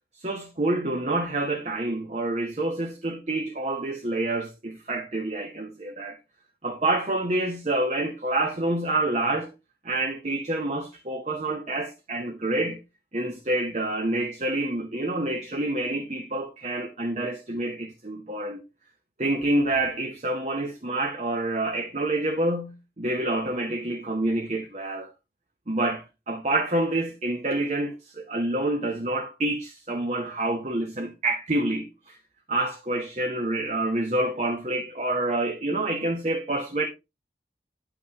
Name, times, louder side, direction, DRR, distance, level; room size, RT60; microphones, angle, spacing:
voice 1, 0.2-6.2 6.6-9.5 9.8-12.8 13.1-18.6 19.2-25.1 25.7-32.2 32.5-36.9, right 2 dB, 40° right, 0.8 m, -27 dB
9.4 x 6.0 x 2.9 m
head